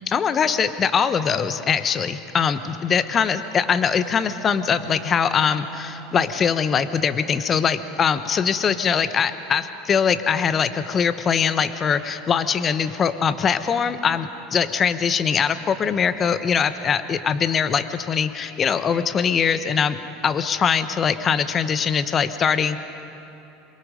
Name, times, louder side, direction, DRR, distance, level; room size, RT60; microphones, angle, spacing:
voice 1, 0.1-20.0 20.2-22.8, left 7 dB, 35° left, 11 dB, 1.2 m, -22 dB
Bowed string instrument, 3.2-7.0, equal, ahead, 2.9 m, -42 dB
27.0 x 23.0 x 5.3 m, 2.9 s
hypercardioid pair, 80°, 0 cm